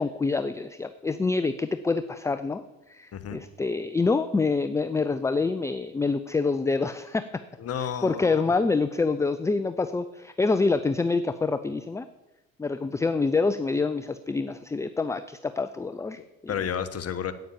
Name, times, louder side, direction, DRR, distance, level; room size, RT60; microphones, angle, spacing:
voice 1, 0.0-2.6 2.9-7.3 7.8-12.1 12.6-16.5, left 4 dB, 10° left, 12 dB, 0.4 m, -26 dB
voice 2, 7.6-8.5 16.5-17.3, left 8 dB, 35° left, 11 dB, 1.3 m, -31 dB
9.3 x 8.9 x 7.2 m, 1.0 s
hypercardioid pair, 70°, 39 cm